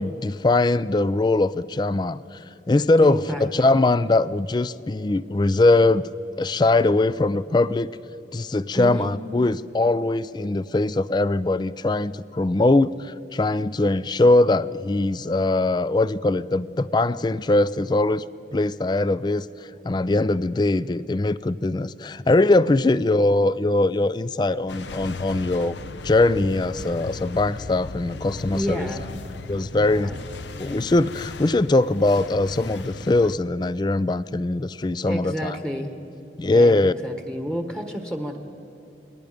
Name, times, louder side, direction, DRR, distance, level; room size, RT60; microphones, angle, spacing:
voice 1, 0.0-2.4 2.7-6.1 6.4-7.9 8.3-18.2 18.5-19.5 19.8-25.8 26.0-28.9 29.5-30.1 30.6-35.6 36.4-36.9, left 2 dB, 25° left, 18 dB, 0.4 m, -21 dB
voice 2, 3.0-3.8 8.7-9.1 28.5-29.1 29.7-30.2 30.7-30.8 35.0-35.9 36.5-38.4, equal, 5° left, 5 dB, 1.3 m, -30 dB
sound 1, 24.7-33.4, left 3 dB, 85° left, 0.8 m, -36 dB
28.5 x 20.0 x 5.1 m, 2.9 s
head